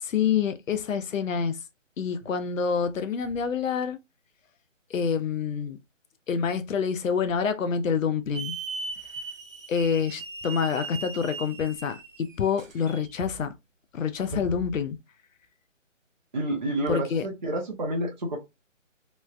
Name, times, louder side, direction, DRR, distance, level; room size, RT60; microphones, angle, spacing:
voice 1, 0.0-1.6 2.0-4.0 4.9-5.8 6.3-8.6 9.7-13.5 13.9-15.0 16.9-17.2, left 6 dB, 90° left, 0.6 m, -27 dB
Hiss / Alarm, 8.3-13.1, right 4 dB, 80° right, 0.9 m, -39 dB
voice 2, 16.3-18.4, right 1 dB, 35° right, 0.6 m, -29 dB
3.1 x 2.1 x 2.3 m
hypercardioid pair, 170°, 38 cm